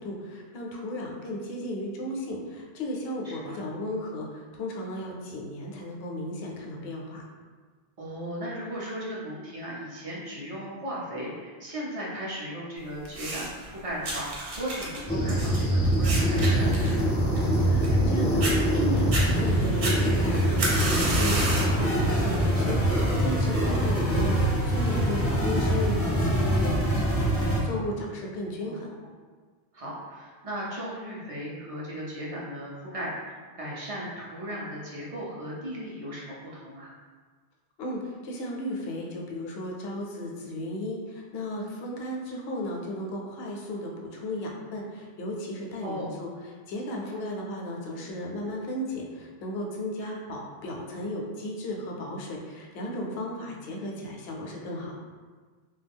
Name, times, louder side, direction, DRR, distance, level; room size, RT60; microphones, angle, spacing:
voice 1, 0.0-7.2 17.7-28.9 37.8-46.3 46.7-54.9, left 1 dB, 75° left, -1 dB, 0.8 m, -35 dB
voice 2, 3.2-3.6 8.0-16.9 23.6-23.9 28.6-28.8 29.0-29.1 29.7-36.9 45.8-46.1 50.0-50.1, equal, 45° right, -5 dB, 0.5 m, -36 dB
sound 1, 13.1-13.7 14.0-18.1 18.4-18.5 19.0-19.3 19.8-21.8 22.2-22.6 23.4-23.5, right 2 dB, 65° right, 0.8 m, -31 dB
sound 2, 15.1-27.6, equal, 20° left, 0.5 m, -24 dB
2.3 x 2.2 x 3.4 m, 1.5 s
omnidirectional pair, 1.1 m